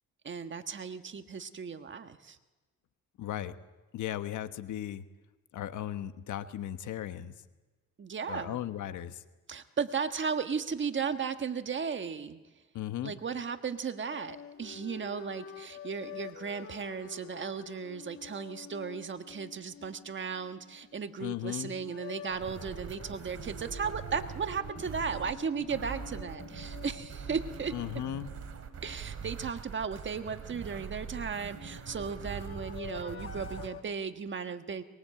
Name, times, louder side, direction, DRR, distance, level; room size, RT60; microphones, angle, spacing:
voice 1, 0.2-2.4 8.0-8.6 9.5-12.4 13.0-27.7 28.8-34.8, right 6 dB, 40° right, 8 dB, 1.5 m, -36 dB
voice 2, 3.2-3.5 3.9-5.0 5.5-7.3 8.3-9.2 12.7-13.1 21.2-21.8 27.7-28.3, left 12 dB, 75° left, 10 dB, 1.2 m, -36 dB
sound 1, 14.1-21.2 21.6-29.5 31.2-33.8, left 7 dB, 45° left, 1.3 m, -48 dB
sound 2, 22.3-33.7, right 7 dB, 55° right, 2.7 m, -43 dB
23.0 x 21.5 x 7.7 m, 1.2 s
cardioid pair, 90°, 30 cm